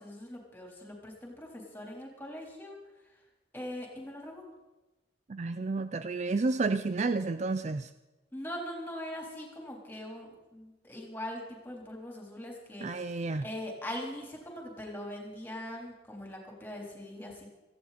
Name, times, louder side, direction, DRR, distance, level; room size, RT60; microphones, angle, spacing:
voice 1, 0.0-2.8 3.5-4.4 8.3-17.5, left 1 dB, 10° left, -1 dB, 3.7 m, -41 dB
voice 2, 5.3-7.9 12.8-13.4, right 3 dB, 40° right, 11 dB, 0.4 m, -31 dB
18.0 x 15.0 x 4.2 m, 1.1 s
head